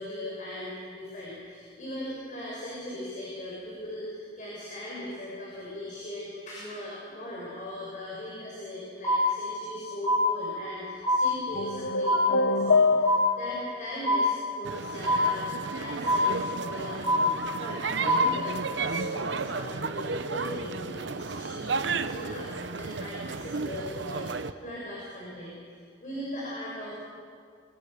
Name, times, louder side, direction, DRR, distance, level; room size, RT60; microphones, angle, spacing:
voice 1, 0.0-26.9, left 1 dB, 45° left, -6 dB, 6.9 m, -39 dB
sound 1, 9.0-9.8 10.0-10.8 11.0-11.8 12.0-12.8 13.0-13.8 14.0-14.8 15.0-15.8 16.0-16.8 17.0-17.8 18.0-18.8, right 1 dB, 15° left, 4.4 m, -27 dB
sound 2, 11.5-13.6, left 3 dB, 80° left, 1.1 m, -24 dB
sound 3, 14.6-24.5, right 4 dB, 75° right, 0.9 m, -33 dB
25.0 x 24.5 x 6.9 m, 2.2 s
head